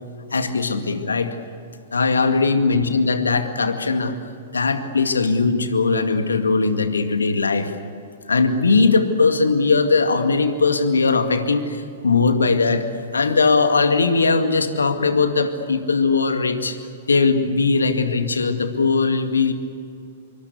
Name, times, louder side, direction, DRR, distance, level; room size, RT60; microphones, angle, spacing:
voice 1, 0.3-1.4 1.9-4.1 4.5-7.7 8.3-12.9 13.1-16.8 17.1-19.5, left 4 dB, 75° left, 7 dB, 2.1 m, -19 dB
26.0 x 24.0 x 8.3 m, 2.5 s
figure-of-eight pair, 105°, 0 cm